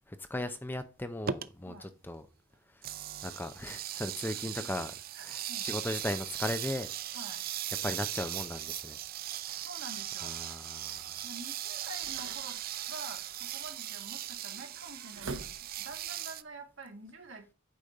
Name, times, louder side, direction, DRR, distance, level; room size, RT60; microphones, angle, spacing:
voice 1, 0.1-2.3 2.7-2.8 3.2-4.9 5.2-6.9 7.8-9.0 9.5-9.6 10.2-11.2, left 1 dB, 10° left, 0.6 m, -37 dB
sound 1, 1.2-1.5 2.8-16.4, right 11 dB, 45° right, 0.5 m, -39 dB
voice 2, 5.1-5.7 7.1-7.5 9.6-10.4 11.2-12.6 12.9-17.5, right 2 dB, 70° right, 2.4 m, -47 dB
sound 2, 8.7-16.1, right 3 dB, 85° right, 1.0 m, -50 dB
8.5 x 5.0 x 3.9 m
head